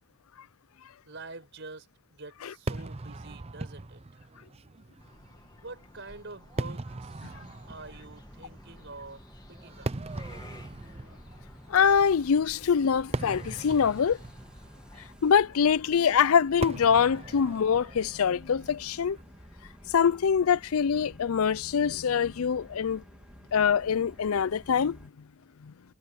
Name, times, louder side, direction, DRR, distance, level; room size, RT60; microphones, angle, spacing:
voice 1, 1.1-4.2 5.6-7.3 7.7-9.2 9.5-9.9, right 3 dB, 60° right, 5.7 m, -46 dB
Fireworks, 2.7-20.0, right 2 dB, 30° right, 0.6 m, -41 dB
sound 1, 5.0-15.1, left 1 dB, 20° left, 2.1 m, -54 dB
sound 2, 7.6-25.1, equal, 5° right, 3.2 m, -52 dB
voice 2, 11.7-14.2 15.2-19.2 19.9-23.0 23.5-25.0, left 7 dB, 85° left, 0.5 m, -24 dB
head